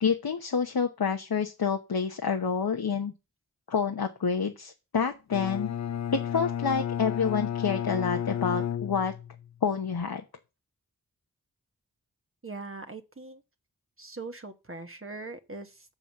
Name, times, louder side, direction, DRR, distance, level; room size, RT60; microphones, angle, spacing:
voice 1, 0.0-3.1 3.7-5.7 6.1-9.1 9.6-10.2, left 6 dB, 85° left, 1.1 m, -28 dB
Bowed string instrument, 5.3-9.5, left 9 dB, 50° left, 0.4 m, -32 dB
voice 2, 12.4-13.4 14.0-15.9, right 3 dB, 35° right, 1.2 m, -41 dB
7.1 x 7.0 x 7.0 m
wide cardioid pair, 50°, 36 cm